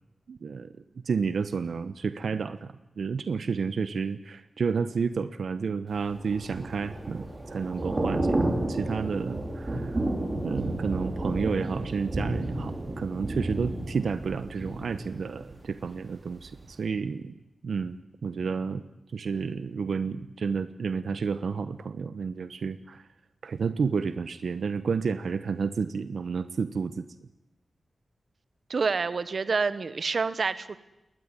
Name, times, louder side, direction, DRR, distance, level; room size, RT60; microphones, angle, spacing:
voice 1, 0.3-0.7 1.0-9.9 10.4-17.3 17.6-18.0 18.2-18.8 19.1-23.0 23.4-27.0, right 5 dB, 75° right, 13 dB, 1.0 m, -31 dB
Thunder / Rain, 6.0-16.0 16.3-16.6, right 2 dB, 30° right, 4.0 m, -31 dB
voice 2, 28.7-30.8, right 4 dB, 55° right, 15 dB, 1.2 m, -27 dB
21.5 x 19.0 x 9.9 m, 0.96 s
wide cardioid pair, 135°, 0 cm